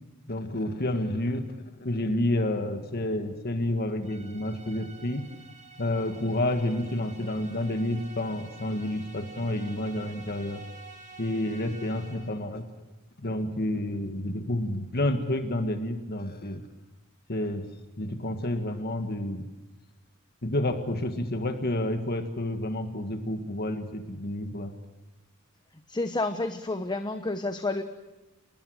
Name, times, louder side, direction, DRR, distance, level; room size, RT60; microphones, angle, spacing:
voice 1, 0.3-5.2 5.8-10.6 11.2-12.7 13.2-16.6 17.3-17.7 18.0-19.5 20.4-24.7, left 1 dB, 45° left, 6 dB, 1.7 m, -29 dB
sound 1, 4.0-12.5, right 4 dB, 35° right, 3.7 m, -49 dB
voice 2, 25.9-27.8, left 2 dB, 20° left, 8 dB, 1.0 m, -30 dB
28.5 x 20.0 x 6.4 m, 1.1 s
head